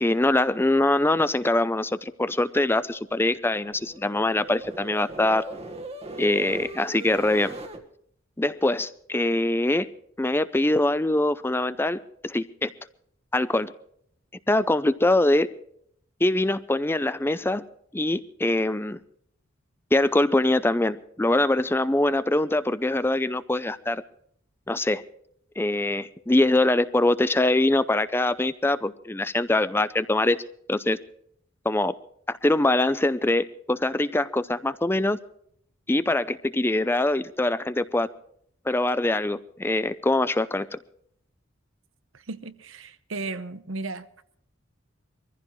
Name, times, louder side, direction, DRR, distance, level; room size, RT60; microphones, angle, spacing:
voice 1, 0.0-5.4 6.2-7.6 8.4-9.9 10.2-12.7 13.3-13.7 14.5-15.5 16.2-17.6 17.9-19.0 19.9-24.0 24.7-25.0 25.6-30.4 30.7-31.0 31.6-31.9 32.3-35.2 35.9-38.1 38.7-40.8, left 2 dB, 10° left, 0.5 m, -23 dB
sound 1, 3.1-7.8, right 1 dB, 30° right, 1.6 m, -40 dB
voice 2, 42.1-44.1, right 3 dB, 80° right, 1.0 m, -35 dB
23.5 x 15.0 x 3.2 m
head